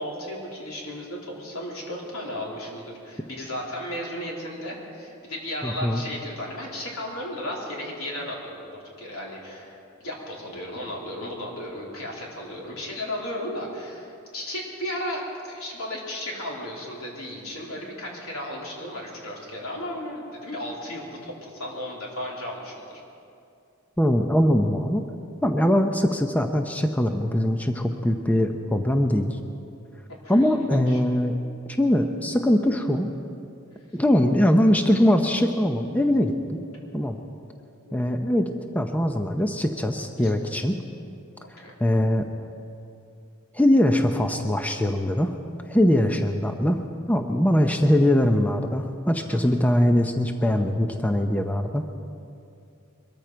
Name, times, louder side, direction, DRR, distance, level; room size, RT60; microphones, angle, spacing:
voice 1, 0.0-22.9 30.1-31.0 37.9-38.0 40.2-40.3 41.4-41.8 49.3-49.4, left 1 dB, 90° left, -3 dB, 3.4 m, -35 dB
voice 2, 5.6-6.0 24.0-25.1 25.4-29.4 30.3-31.4 31.8-33.1 33.9-36.6 36.9-37.2 37.9-40.8 41.5-42.3 43.5-45.3 45.7-46.8 47.1-51.8, left 1 dB, 5° left, 5 dB, 0.6 m, -22 dB
22.5 x 13.5 x 4.5 m, 2.6 s
head